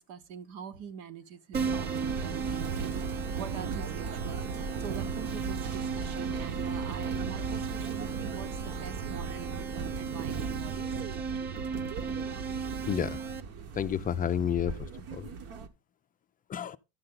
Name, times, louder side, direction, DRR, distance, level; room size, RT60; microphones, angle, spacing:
voice 1, 0.0-10.9, right 8 dB, 70° right, 1.4 m, -44 dB
Keyboard (musical), 1.5-13.4, right 5 dB, 30° right, 0.9 m, -37 dB
sound 1, 1.5-15.7, right 5 dB, 50° right, 1.2 m, -37 dB
voice 2, 12.8-13.2 13.7-15.3 16.5-16.8, left 9 dB, 30° left, 0.4 m, -31 dB
12.0 x 6.6 x 3.8 m
supercardioid pair, 110°, 31 cm